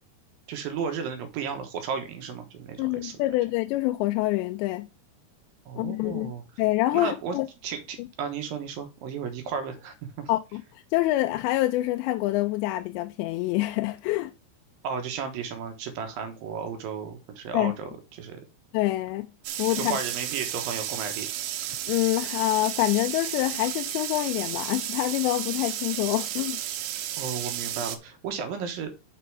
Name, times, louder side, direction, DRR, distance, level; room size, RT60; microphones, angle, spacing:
voice 1, 0.5-3.1 5.7-6.4 6.9-7.3 7.6-10.3 14.8-18.4 19.7-21.3 27.2-28.9, right 6 dB, 70° right, 2.5 m, -34 dB
voice 2, 2.8-4.9 5.8-6.3 6.6-7.5 8.0-8.1 10.3-10.6 10.9-14.3 17.5-17.7 18.7-19.3 19.5-20.0 21.9-26.6, left 17 dB, 90° left, 2.8 m, -26 dB
sound 1, 19.5-28.0, right 12 dB, 85° right, 3.0 m, -33 dB
6.9 x 6.1 x 4.6 m
omnidirectional pair, 5.0 m